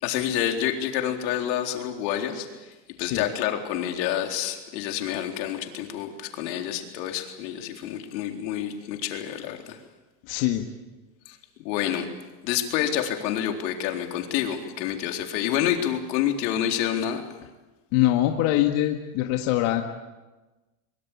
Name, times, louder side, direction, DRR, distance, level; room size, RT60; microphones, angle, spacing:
voice 1, 0.0-2.7 3.0-9.8 11.3-11.4 11.6-12.1 12.4-17.2, left 10 dB, 85° left, 3 dB, 4.1 m, -28 dB
voice 2, 10.3-10.7 17.9-19.8, left 14 dB, 55° left, 3 dB, 2.0 m, -23 dB
24.0 x 23.5 x 8.6 m, 1.1 s
cardioid pair, 170°, 50 cm